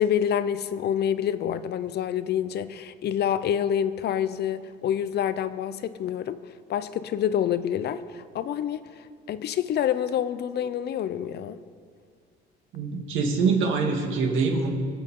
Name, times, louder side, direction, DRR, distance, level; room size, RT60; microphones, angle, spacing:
voice 1, 0.0-6.4 6.7-11.6, left 9 dB, 55° left, 13 dB, 0.7 m, -27 dB
voice 2, 12.7-14.7, right 4 dB, 75° right, 1 dB, 2.2 m, -24 dB
23.5 x 8.0 x 3.8 m, 2.1 s
cardioid pair, 100°, 20 cm